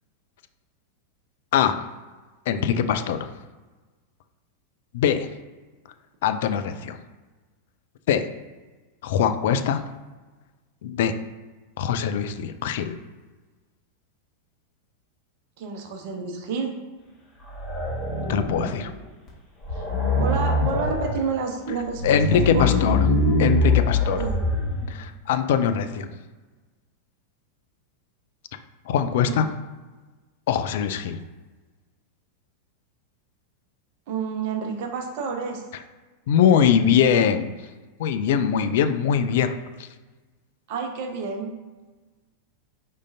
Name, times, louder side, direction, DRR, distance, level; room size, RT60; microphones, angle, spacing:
voice 1, 2.5-3.3 4.9-5.3 6.2-7.0 8.1-8.2 9.0-9.8 10.8-11.1 11.8-13.0 18.3-18.9 22.0-23.1 23.4-24.2 24.9-26.1 28.9-29.5 30.5-31.2 36.3-37.5 38.0-39.5 39.8-39.9, left 8 dB, 55° left, 9 dB, 0.3 m, -22 dB
voice 2, 15.6-16.8 19.7-22.9 24.2-24.4 29.2-29.4 34.1-35.6 40.7-41.5, right 5 dB, 50° right, 3 dB, 0.7 m, -30 dB
sound 1, 17.4-18.9 19.3-19.4 19.6-21.2 21.8-24.9, left 2 dB, 25° left, 1.4 m, -23 dB
4.9 x 3.7 x 2.7 m, 1.3 s
figure-of-eight pair, 90°, 0 cm